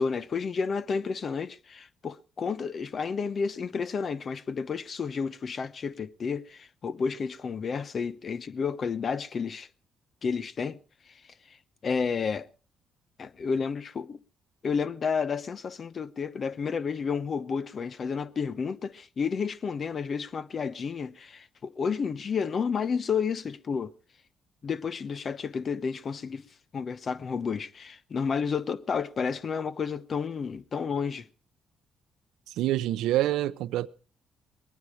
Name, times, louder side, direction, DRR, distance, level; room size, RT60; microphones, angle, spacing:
voice 1, 0.0-9.7 10.2-10.8 11.5-11.6 11.8-12.5 13.2-14.2 14.6-23.9 24.6-26.4 26.7-31.3, left 5 dB, 45° left, 0.9 m, -31 dB
voice 2, 32.5-33.9, right 14 dB, 90° right, 0.6 m, -26 dB
21.5 x 9.5 x 4.8 m
cardioid pair, 90°, 0 cm